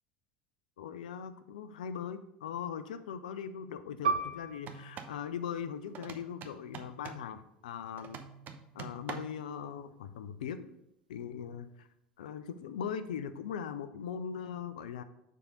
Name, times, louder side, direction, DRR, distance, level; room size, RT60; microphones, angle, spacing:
voice 1, 0.8-8.2 8.7-10.7 11.1-11.7 12.2-15.0, left 7 dB, 75° left, 11 dB, 0.5 m, -40 dB
Piano, 4.0-9.1 9.4-9.6 10.4-10.7, right 4 dB, 85° right, 0.4 m, -39 dB
sound 1, 4.6-5.2 5.9-7.3 8.0-9.4, right 6 dB, 45° right, 0.7 m, -45 dB
6.7 x 3.6 x 5.2 m, 0.83 s
figure-of-eight pair, 75°, 4 cm